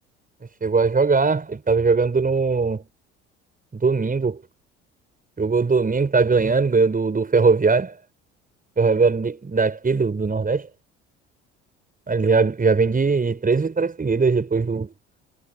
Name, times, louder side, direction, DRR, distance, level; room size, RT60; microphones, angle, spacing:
voice 1, 0.6-2.8 3.7-4.4 5.4-7.9 8.8-10.7 12.1-14.9, right 4 dB, 25° right, 7.2 m, -20 dB
hypercardioid pair, 60°, 33 cm